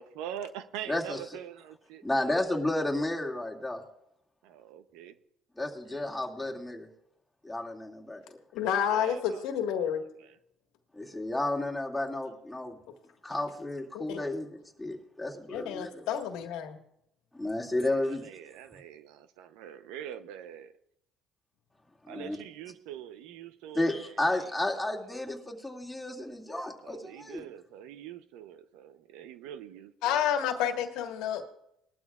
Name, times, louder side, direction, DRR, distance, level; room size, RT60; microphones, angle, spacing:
voice 1, 0.0-2.6 4.4-5.1 8.6-9.4 17.8-20.7 22.1-24.1 26.8-30.2, right 10 dB, 85° right, 11 dB, 0.7 m, -44 dB
voice 2, 0.9-1.2 2.0-3.8 5.6-6.9 7.4-8.4 10.9-12.8 13.2-16.0 17.3-18.3 22.1-22.4 23.7-27.4, left 1 dB, 5° left, -2 dB, 2.3 m, -32 dB
voice 3, 8.5-10.0 13.9-14.2 15.5-16.8 30.0-31.4, left 9 dB, 80° left, 5 dB, 1.6 m, -30 dB
20.5 x 12.5 x 2.4 m, 0.79 s
supercardioid pair, 85°, 0 cm